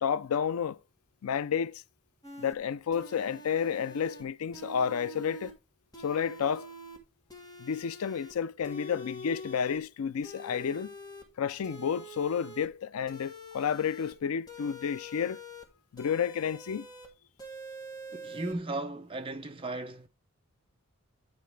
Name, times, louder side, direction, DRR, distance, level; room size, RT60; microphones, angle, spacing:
voice 1, 0.0-0.8 1.2-1.8 2.4-5.5 6.0-6.7 7.6-10.9 11.4-15.4 15.9-16.9, left 7 dB, 85° left, 0.4 m, -31 dB
sound 1, 2.2-2.6 2.9-4.2 4.5-5.5 5.9-7.0 7.3-8.3 8.6-9.8 10.2-11.2 11.6-12.7 13.1-14.1 14.5-15.7 16.0-17.1 17.4-18.5, equal, 20° left, 1.4 m, -45 dB
voice 2, 18.1-20.1, right 2 dB, 25° right, 0.7 m, -36 dB
9.4 x 4.6 x 3.4 m
head